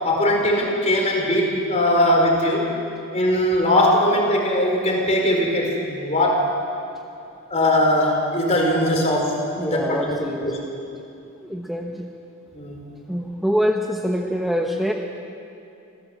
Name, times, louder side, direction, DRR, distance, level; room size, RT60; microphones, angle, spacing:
voice 1, 0.0-2.7 3.1-6.5 7.5-10.6 12.5-12.8, left 1 dB, 30° left, 0 dB, 4.2 m, -20 dB
voice 2, 9.6-10.5 11.3-12.1 13.1-14.9, equal, ahead, 1 dB, 1.0 m, -25 dB
26.5 x 16.5 x 7.7 m, 2.7 s
head